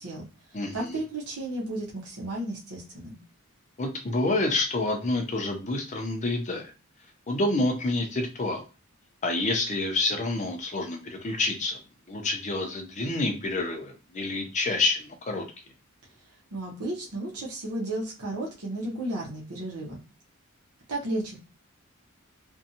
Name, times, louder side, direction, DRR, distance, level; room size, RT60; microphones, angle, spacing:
voice 1, 0.0-3.2 16.5-20.0 20.9-21.4, right 1 dB, 85° right, -4 dB, 0.8 m, -33 dB
voice 2, 0.5-1.0 3.8-6.7 7.3-8.6 9.2-11.8 12.1-15.4, left 2 dB, 30° left, 4 dB, 0.5 m, -28 dB
2.6 x 2.2 x 2.7 m, 0.31 s
head